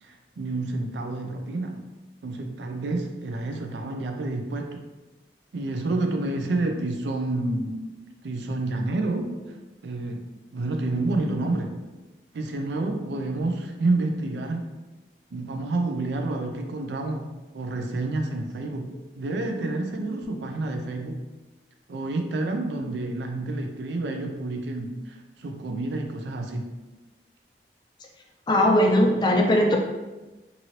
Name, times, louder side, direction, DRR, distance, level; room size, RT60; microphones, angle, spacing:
voice 1, 0.0-1.8 2.2-4.8 5.5-7.7 8.2-9.6 9.8-11.7 12.3-14.7 15.3-17.3 17.5-21.2 21.9-26.7, right 2 dB, 80° right, 4 dB, 0.4 m, -29 dB
voice 2, 28.5-29.8, left 1 dB, 25° left, 1 dB, 0.3 m, -19 dB
2.8 x 2.6 x 3.0 m, 1.1 s
head